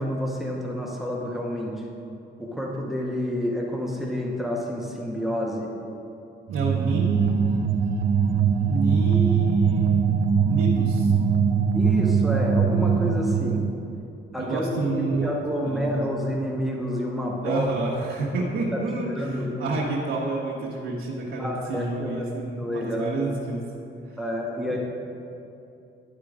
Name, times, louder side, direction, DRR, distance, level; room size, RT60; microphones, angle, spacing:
voice 1, 0.0-1.8 2.4-5.7 11.7-13.6 14.3-17.7 18.7-19.7 21.4-23.1 24.2-24.8, equal, ahead, -1 dB, 1.0 m, -29 dB
sound 1, 6.5-13.9, right 6 dB, 45° right, 0.5 m, -22 dB
voice 2, 6.5-7.5 8.7-10.1 10.5-11.1 14.4-15.3 15.6-16.2 17.4-23.6 24.1-24.2 24.7-24.8, right 3 dB, 80° right, -6 dB, 1.1 m, -29 dB
11.0 x 3.8 x 4.8 m, 2.7 s
cardioid pair, 90°, 20 cm